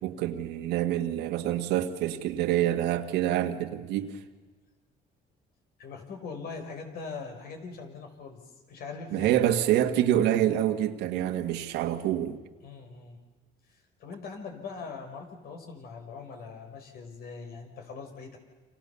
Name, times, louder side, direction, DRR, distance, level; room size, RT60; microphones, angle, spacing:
voice 1, 0.0-4.2 9.1-12.4, right 12 dB, 90° right, 1.9 m, -26 dB
voice 2, 5.8-8.4 8.7-9.4 12.6-13.2 13.7-18.4, left 4 dB, 65° left, 5.1 m, -41 dB
29.5 x 26.5 x 7.1 m
cardioid pair, 110°, 17 cm